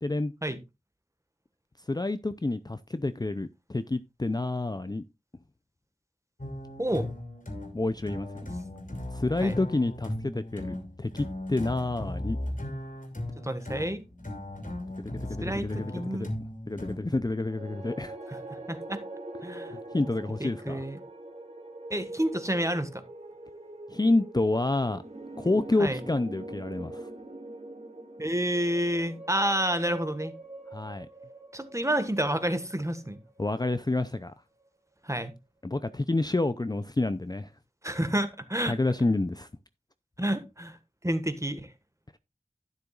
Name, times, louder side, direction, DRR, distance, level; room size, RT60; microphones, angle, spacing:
voice 1, 0.0-0.3 1.9-5.0 7.7-8.3 9.1-12.4 15.0-16.3 16.7-18.2 19.5-20.8 23.9-25.0 25.4-27.1 30.7-31.1 33.4-34.3 35.6-37.5 38.7-39.5, left 2 dB, 25° left, 0.5 m, -29 dB
sound 1, 6.4-17.3, left 1 dB, 60° left, 2.9 m, -37 dB
voice 2, 13.4-14.0 15.4-16.3 18.5-19.0 19.4-19.7 20.4-21.0 21.9-23.0 25.8-26.0 28.2-30.3 31.5-33.2 35.0-35.3 37.8-38.7 40.2-40.8 41.0-41.7, right 1 dB, 20° right, 1.5 m, -29 dB
sound 2, 17.4-33.7, right 2 dB, 45° right, 2.4 m, -44 dB
12.0 x 9.9 x 2.4 m
wide cardioid pair, 45°, 15 cm